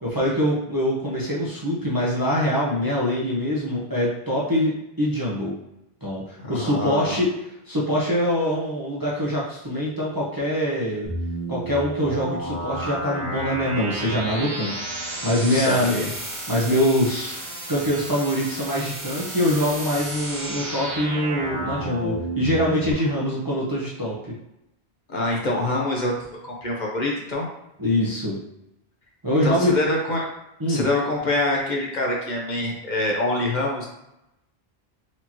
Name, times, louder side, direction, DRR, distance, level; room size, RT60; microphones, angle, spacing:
voice 1, 0.0-4.7 5.0-5.5 6.0-7.3 7.7-11.1 11.5-15.9 16.5-17.4 17.7-24.1 27.8-28.4 29.2-29.7 30.6-30.9, equal, 25° right, -5 dB, 0.6 m, -24 dB
voice 2, 6.4-7.1 15.5-16.1 25.1-26.1 26.4-27.5 29.4-30.3 30.7-33.9, left 1 dB, 50° left, -2 dB, 0.8 m, -25 dB
sound 1, 11.0-22.9, right 2 dB, 85° right, 1.4 m, -32 dB
4.3 x 2.8 x 2.9 m, 0.88 s
omnidirectional pair, 1.1 m